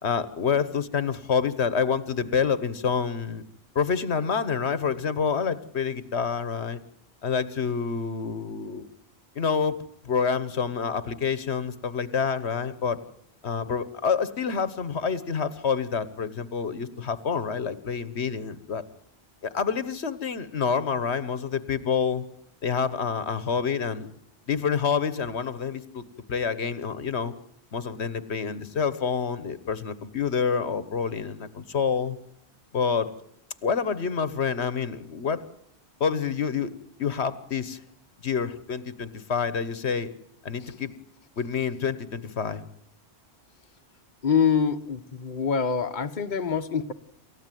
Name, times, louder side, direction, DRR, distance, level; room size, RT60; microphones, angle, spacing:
voice 1, 0.0-3.4 3.7-6.8 7.2-8.9 9.3-9.8 10.0-13.0 13.4-18.8 19.4-22.2 22.6-24.1 24.5-26.0 26.3-27.3 27.7-32.2 32.7-33.1 33.6-35.4 36.0-36.7 37.0-37.8 38.2-40.1 40.4-40.9 41.4-42.6, left 6 dB, 80° left, 1.5 m, -27 dB
voice 2, 44.2-46.9, left 6 dB, 45° left, 1.3 m, -25 dB
28.5 x 14.5 x 9.2 m
omnidirectional pair, 1.1 m